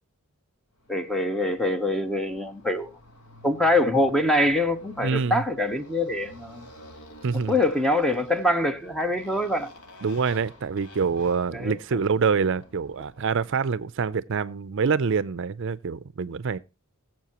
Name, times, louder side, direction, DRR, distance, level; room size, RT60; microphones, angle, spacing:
Motorcycle, 0.8-13.6, equal, 85° left, 1.7 m, -50 dB
voice 1, 0.9-2.9 3.4-6.7 7.5-9.7 11.5-11.8, left 1 dB, 5° left, 0.8 m, -24 dB
voice 2, 5.0-5.4 7.2-7.6 10.0-16.6, right 5 dB, 60° right, 0.5 m, -26 dB
21.0 x 7.5 x 2.9 m
head